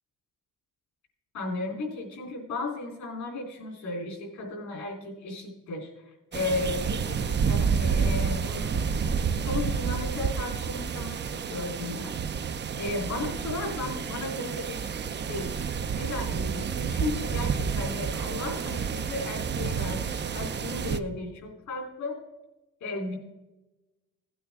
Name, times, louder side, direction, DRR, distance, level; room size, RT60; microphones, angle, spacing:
voice 1, 1.3-9.2 9.4-12.1 12.8-15.0 15.3-15.5 15.9-22.2 22.8-23.2, left 2 dB, 70° left, 1 dB, 3.4 m, -35 dB
sound 1, 6.3-21.0, right 6 dB, 35° right, 0.6 m, -29 dB
16.5 x 9.1 x 3.6 m, 1.0 s
cardioid pair, 90°, 30 cm